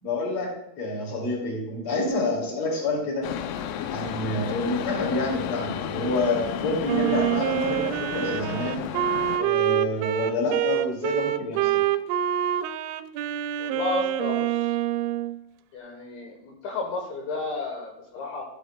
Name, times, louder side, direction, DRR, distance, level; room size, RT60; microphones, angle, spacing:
voice 1, 0.0-3.3 3.9-8.9 9.4-11.8, left 2 dB, 40° left, -1 dB, 2.6 m, -28 dB
sound 1, 3.2-9.4, left 9 dB, 90° left, 3.0 m, -33 dB
Wind instrument woodwind instrument, 6.9-15.3, right 12 dB, 85° right, 2.8 m, -26 dB
voice 2, 13.6-14.7 15.7-18.5, left 3 dB, 70° left, 1 dB, 2.7 m, -32 dB
12.5 x 9.5 x 2.2 m, 0.84 s
omnidirectional pair, 5.1 m